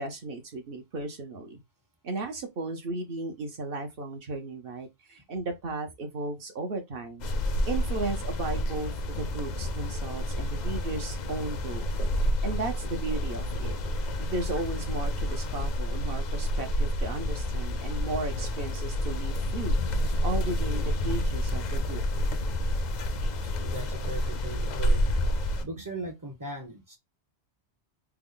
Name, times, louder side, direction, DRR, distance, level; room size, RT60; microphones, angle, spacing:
voice 1, 0.0-1.6 2.0-7.3 7.7-11.9 12.4-13.7 14.2-19.8 20.2-22.0 25.6-25.7, right 2 dB, 60° right, 0.9 m, -35 dB
sound 1, 7.2-25.6, left 1 dB, 55° left, 0.5 m, -29 dB
voice 2, 23.6-25.0 25.6-27.0, right 2 dB, 25° right, 0.5 m, -38 dB
3.4 x 2.0 x 3.6 m
omnidirectional pair, 1.2 m